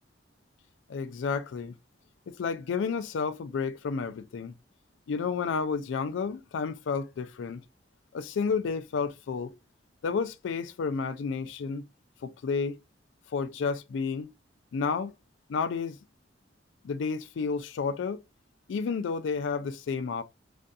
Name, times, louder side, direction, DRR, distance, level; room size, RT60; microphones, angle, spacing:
voice 1, 0.9-1.8 2.4-4.5 5.1-7.6 8.1-9.5 10.0-11.8 12.2-12.8 13.3-14.3 14.7-15.1 15.5-16.0 16.8-18.2 18.7-20.2, left 5 dB, 85° left, 0.3 m, -31 dB
2.6 x 2.4 x 2.2 m
head